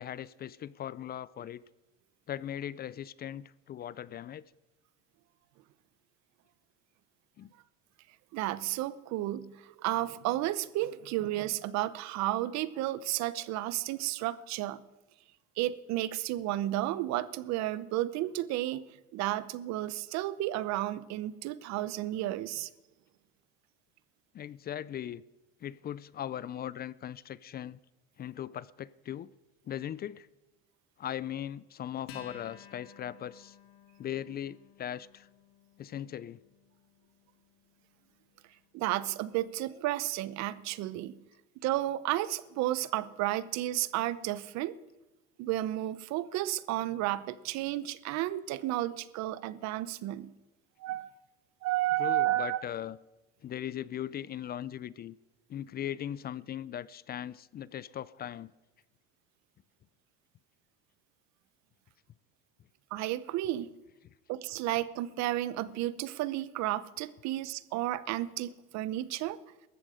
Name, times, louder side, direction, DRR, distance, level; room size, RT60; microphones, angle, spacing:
voice 1, 0.0-1.6 2.3-4.4 7.4-7.5 24.3-25.2 25.6-27.8 28.2-29.3 29.7-30.3 31.0-33.6 34.0-35.3 35.8-36.4 52.0-53.0 53.4-55.2 55.5-58.5, left 10 dB, 35° left, 20 dB, 0.4 m, -39 dB
voice 2, 8.3-14.8 15.6-18.8 19.1-22.7 38.7-41.2 41.6-44.8 45.4-50.3 50.8-51.2 51.6-52.6 62.9-63.7 64.3-69.4, right 15 dB, 65° right, 17 dB, 0.9 m, -32 dB
Acoustic guitar, 32.1-38.9, left 8 dB, 90° left, 2.6 m, -55 dB
18.5 x 14.0 x 5.0 m, 1.1 s
cardioid pair, 115°, 29 cm